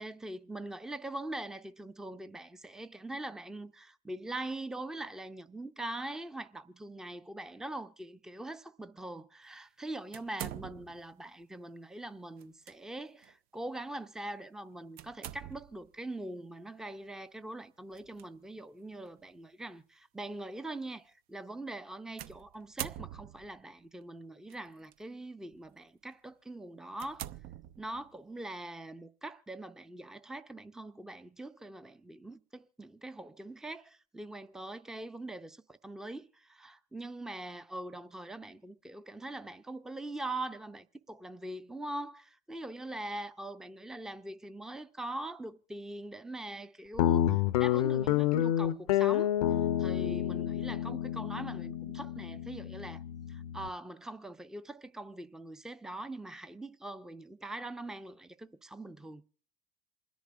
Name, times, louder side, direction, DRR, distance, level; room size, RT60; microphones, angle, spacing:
voice 1, 0.0-27.2 27.8-49.3 49.8-53.0 53.3-59.2, right 1 dB, 5° right, 0.5 m, -42 dB
sound 1, 10.1-11.1 12.4-12.7 13.2-13.3 15.0-15.9 17.9-18.2 19.1-19.2 22.2-23.6 24.5-24.9 25.5-25.7 26.2-26.3 26.9-28.2, right 12 dB, 55° right, 0.5 m, -44 dB
Guitar, 47.0-53.7, left 12 dB, 85° left, 0.5 m, -29 dB
27.5 x 10.0 x 2.4 m
hypercardioid pair, 75°, 18 cm